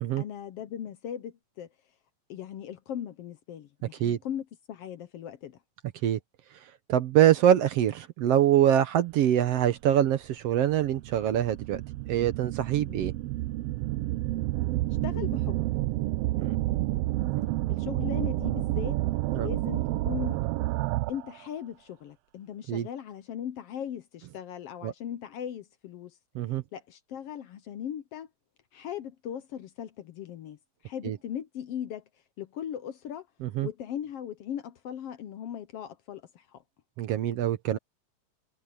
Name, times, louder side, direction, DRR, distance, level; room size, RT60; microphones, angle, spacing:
voice 1, 0.2-1.7 2.3-5.6 12.8-13.1 15.0-15.6 17.7-19.0 19.3-20.4 21.1-26.2 26.7-28.3 28.7-30.6 30.8-32.0 32.4-33.3 33.6-36.6, left 9 dB, 65° left, 1.6 m, -38 dB
voice 2, 6.9-11.8 12.1-13.1 16.4-16.6 17.4-17.5 19.3-19.5 22.7-22.9 24.8-24.9 26.4-26.6 31.0-31.2 33.4-33.7 37.0-37.8, right 11 dB, 70° right, 1.8 m, -24 dB
sound 1, 9.9-10.0 10.7-21.4, right 17 dB, 85° right, 1.3 m, -30 dB
omnidirectional pair, 3.3 m